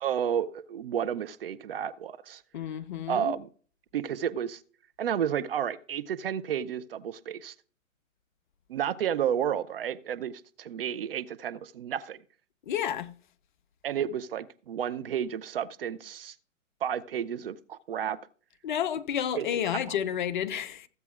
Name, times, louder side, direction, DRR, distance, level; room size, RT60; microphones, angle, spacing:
voice 1, 0.0-2.4 3.1-3.5 3.9-4.6 5.0-7.5 8.7-10.3 10.6-12.2 13.8-16.3 16.8-18.2 19.3-19.5 19.9-20.0, right 9 dB, 45° right, 0.5 m, -31 dB
voice 2, 2.5-3.3 12.7-13.1 18.6-20.9, left 9 dB, 35° left, 0.6 m, -30 dB
14.5 x 8.1 x 2.4 m
figure-of-eight pair, 125°, 40 cm